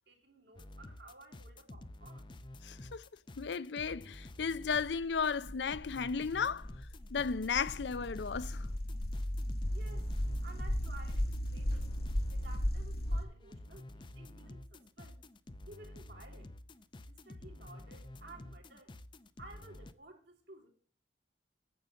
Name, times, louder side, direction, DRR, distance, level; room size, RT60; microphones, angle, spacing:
voice 1, 0.1-2.3 9.7-10.1 10.4-11.9 12.3-15.2 15.7-16.5 17.1-18.9 19.4-20.7, right 2 dB, 70° right, 3.5 m, -55 dB
sound 1, 0.5-12.8 13.0-19.9, left 1 dB, 25° left, 0.5 m, -50 dB
voice 2, 2.6-3.0 3.4-6.7 7.1-8.7, left 5 dB, 75° left, 0.5 m, -34 dB
sound 2, 5.0-13.2, equal, 60° left, 1.2 m, -36 dB
9.4 x 7.8 x 7.3 m
head